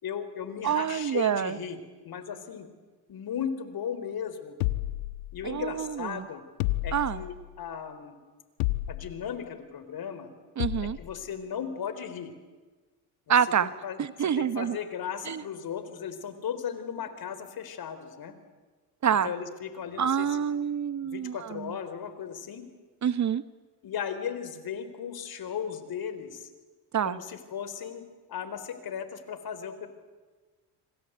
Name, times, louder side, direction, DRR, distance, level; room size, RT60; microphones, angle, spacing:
voice 1, 0.0-1.8 2.1-2.7 3.1-4.6 5.3-6.4 6.8-8.2 8.9-10.3 10.8-12.3 13.3-13.4 13.6-18.3 19.2-20.4 21.0-22.6 23.8-26.5 27.0-29.9, left 8 dB, 50° left, 11 dB, 4.1 m, -36 dB
voice 2, 0.6-1.6 5.4-6.3 6.9-7.2 10.6-11.0 13.3-13.7 14.0-14.8 15.2-15.4 19.0-19.3 20.0-21.7 23.0-23.4 26.9-27.2, right 8 dB, 35° right, 14 dB, 1.0 m, -27 dB
sound 1, 4.6-5.7 6.6-7.5 8.6-9.3 10.6-11.1, left 17 dB, 85° left, 1.3 m, -31 dB
27.5 x 25.5 x 8.1 m, 1.3 s
supercardioid pair, 70°, 47 cm